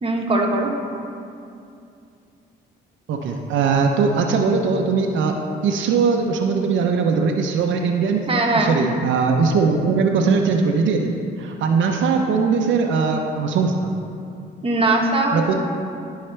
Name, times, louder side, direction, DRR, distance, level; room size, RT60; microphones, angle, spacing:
voice 1, 0.0-0.7 8.3-8.7 14.6-15.5, right 2 dB, 30° right, 0 dB, 1.2 m, -20 dB
voice 2, 3.1-5.4 5.6-8.3 8.5-11.1 11.4-13.9 15.3-15.5, right 5 dB, 75° right, 2 dB, 0.6 m, -20 dB
11.5 x 5.6 x 3.3 m, 2.5 s
cardioid pair, 90°, 20 cm